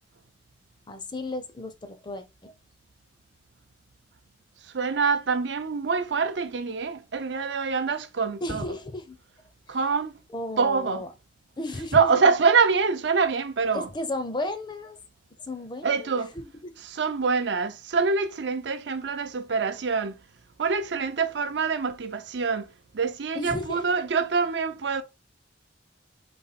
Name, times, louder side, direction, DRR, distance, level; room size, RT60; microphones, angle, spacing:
voice 1, 0.9-2.5 8.4-9.2 9.7-9.8 10.3-11.1 11.6-12.2 13.7-15.0 15.5-16.7 23.3-23.8, left 2 dB, 25° left, 0.6 m, -34 dB
voice 2, 4.6-8.7 9.7-10.2 10.6-11.0 11.9-13.9 15.8-16.3 16.8-20.2 20.6-25.0, right 5 dB, 70° right, 0.6 m, -25 dB
4.1 x 3.0 x 4.1 m
head